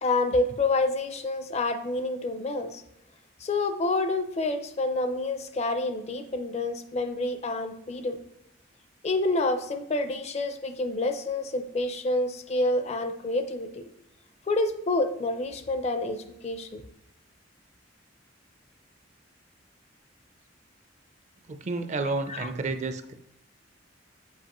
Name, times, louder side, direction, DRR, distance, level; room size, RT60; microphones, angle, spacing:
voice 1, 0.0-2.8 3.4-8.2 9.0-13.8 14.5-16.8 22.3-22.5, left 2 dB, 35° left, 9 dB, 0.5 m, -28 dB
voice 2, 21.5-23.1, right 3 dB, 40° right, 9 dB, 0.4 m, -30 dB
7.3 x 5.1 x 3.0 m, 0.84 s
head